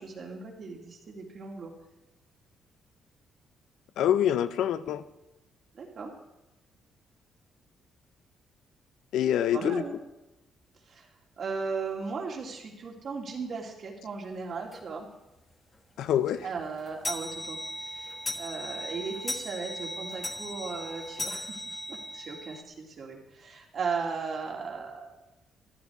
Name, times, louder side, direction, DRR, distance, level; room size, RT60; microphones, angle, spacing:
voice 1, 0.0-1.7 5.7-6.1 9.5-9.9 10.9-11.1 11.4-15.1 16.4-17.6 17.8-18.1 18.3-25.2, right 5 dB, 55° right, 0 dB, 3.0 m, -36 dB
voice 2, 4.0-5.0 9.1-9.8 16.0-16.4, left 10 dB, 80° left, 13 dB, 0.7 m, -25 dB
sound 1, 14.7-14.9 15.3-15.4 15.7-15.8 16.2-22.6, left 1 dB, 20° left, 1.6 m, -37 dB
14.5 x 12.0 x 4.7 m, 0.95 s
cardioid pair, 90°, 0 cm